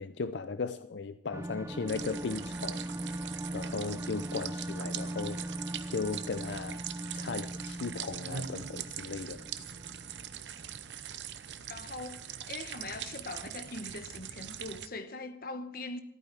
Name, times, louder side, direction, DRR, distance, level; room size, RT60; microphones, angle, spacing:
voice 1, 0.0-2.8 3.5-5.6 5.9-6.8 7.1-9.4, left 4 dB, 85° left, 0.5 m, -37 dB
sound 1, 1.3-10.7, right 1 dB, 15° right, 0.5 m, -40 dB
sound 2, 1.9-14.9, right 9 dB, 85° right, 0.8 m, -42 dB
voice 2, 11.7-12.2 12.5-16.0, left 2 dB, 55° left, 1.1 m, -41 dB
14.0 x 9.2 x 7.5 m
head